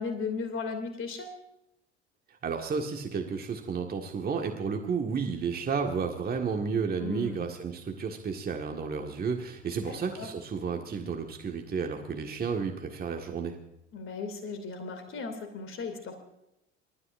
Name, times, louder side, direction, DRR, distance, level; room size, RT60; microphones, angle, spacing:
voice 1, 0.0-1.4 7.0-7.5 9.8-10.3 13.9-16.2, left 4 dB, 35° left, 7 dB, 2.8 m, -36 dB
voice 2, 2.3-13.6, right 5 dB, 25° right, 3 dB, 1.8 m, -32 dB
28.0 x 13.5 x 2.6 m, 0.84 s
figure-of-eight pair, 65°, 34 cm